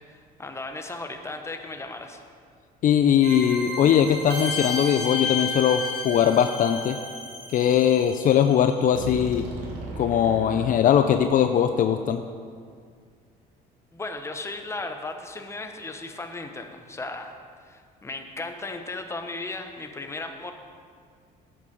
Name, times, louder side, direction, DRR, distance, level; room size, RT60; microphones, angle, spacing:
voice 1, 0.1-2.2 13.9-17.4 17.6-20.5, left 2 dB, 15° left, 5 dB, 1.0 m, -36 dB
voice 2, 2.8-7.0 7.5-9.5 10.0-12.2, left 9 dB, 55° left, 8 dB, 0.5 m, -20 dB
sound 1, 3.2-10.7, left 2 dB, 90° right, 2.1 m, -33 dB
11.0 x 8.6 x 5.3 m, 2.1 s
cardioid pair, 110°, 17 cm